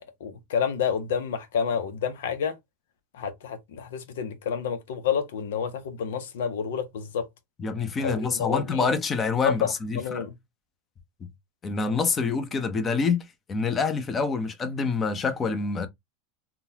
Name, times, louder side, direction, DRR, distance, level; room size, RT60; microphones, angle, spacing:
voice 1, 0.2-2.6 3.1-7.3 8.0-8.9 9.4-10.4, left 7 dB, 80° left, 0.9 m, -29 dB
voice 2, 7.6-10.3 11.6-15.9, left 5 dB, 25° left, 0.7 m, -26 dB
3.7 x 2.4 x 2.8 m
supercardioid pair, 120°, 0 cm